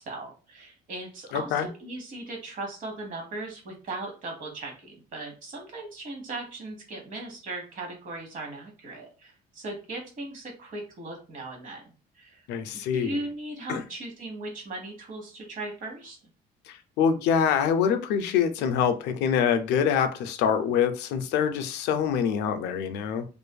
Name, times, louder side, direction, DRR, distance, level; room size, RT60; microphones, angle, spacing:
voice 1, 0.0-11.8 12.2-12.5 12.7-16.2, right 2 dB, 50° right, 1.1 m, -38 dB
voice 2, 1.3-1.7 12.5-13.2 13.7-13.8 16.7-23.3, left 7 dB, 85° left, 0.4 m, -25 dB
2.5 x 2.4 x 2.2 m
cardioid pair, 110°, 17 cm